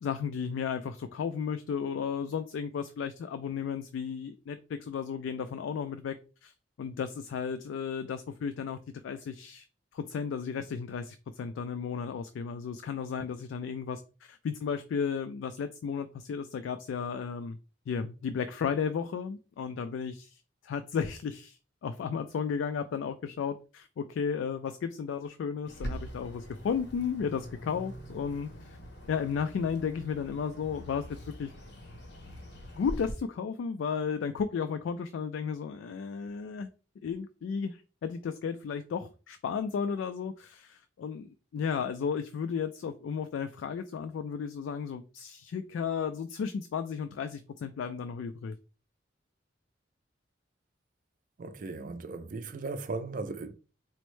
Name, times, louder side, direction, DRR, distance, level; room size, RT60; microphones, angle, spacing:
voice 1, 0.0-6.2 6.4-6.5 6.8-8.8 9.0-9.7 9.9-17.6 17.9-28.8 29.1-31.5 32.8-36.7 37.0-48.6, left 6 dB, 85° left, 0.3 m, -34 dB
Bird, 25.7-33.1, equal, 65° left, 0.7 m, -43 dB
voice 2, 51.4-53.5, right 3 dB, 45° right, 0.4 m, -37 dB
4.2 x 2.0 x 3.1 m
head